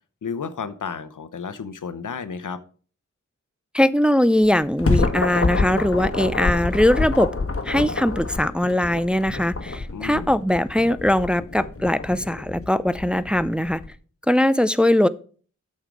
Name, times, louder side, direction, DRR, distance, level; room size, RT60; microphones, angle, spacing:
voice 1, 0.2-2.6 9.9-10.3, left 6 dB, 85° left, 12 dB, 0.8 m, -32 dB
voice 2, 3.7-7.3 7.6-13.8 14.3-15.1, left 1 dB, 5° right, 14 dB, 0.5 m, -20 dB
sound 1, 4.4-13.9, left 3 dB, 50° left, 1.4 m, -27 dB
8.9 x 6.5 x 4.7 m, 0.41 s
cardioid pair, 40°, 30 cm